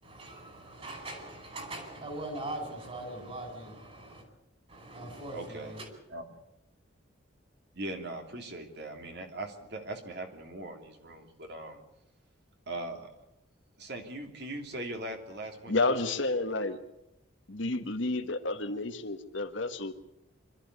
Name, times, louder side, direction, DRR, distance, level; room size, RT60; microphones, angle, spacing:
voice 1, 0.0-4.2 4.7-5.9, right 1 dB, 30° right, 5.0 m, -41 dB
voice 2, 5.3-5.7 6.1-6.2 7.7-11.8 12.7-13.1 13.8-15.7 16.0-16.2, right 1 dB, 55° right, 2.9 m, -40 dB
voice 3, 15.7-16.8 17.5-19.9, left 2 dB, 65° left, 1.6 m, -30 dB
25.5 x 13.0 x 9.6 m
head